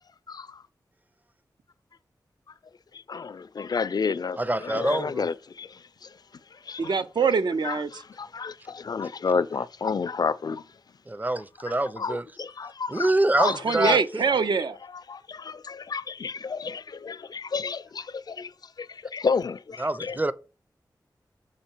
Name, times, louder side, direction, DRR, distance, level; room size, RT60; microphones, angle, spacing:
voice 1, 0.3-0.6 3.1-6.1 6.7-6.9 7.6-10.6 11.7-13.1 13.4-14.0 15.1-18.5 18.8-20.2, left 5 dB, 60° left, 0.4 m, -30 dB
voice 2, 4.4-5.3 11.1-12.2 12.9-14.2 19.8-20.3, right 2 dB, 20° right, 0.5 m, -26 dB
voice 3, 6.8-8.0 13.4-14.8, right 5 dB, 70° right, 0.5 m, -24 dB
6.6 x 3.9 x 4.4 m
cardioid pair, 50°, 8 cm